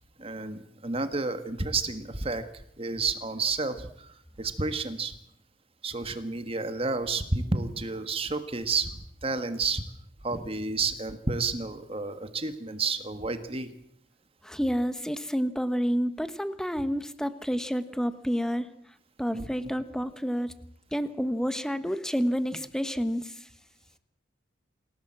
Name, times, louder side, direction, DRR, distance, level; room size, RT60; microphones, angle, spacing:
voice 1, 0.2-2.5 2.8-5.1 5.8-9.8 10.2-13.7 19.3-19.4, right 3 dB, 30° right, 9 dB, 1.6 m, -31 dB
voice 2, 14.4-18.7 19.2-20.5 20.9-23.5, equal, 5° left, 12 dB, 1.1 m, -29 dB
27.5 x 16.5 x 7.5 m, 0.71 s
head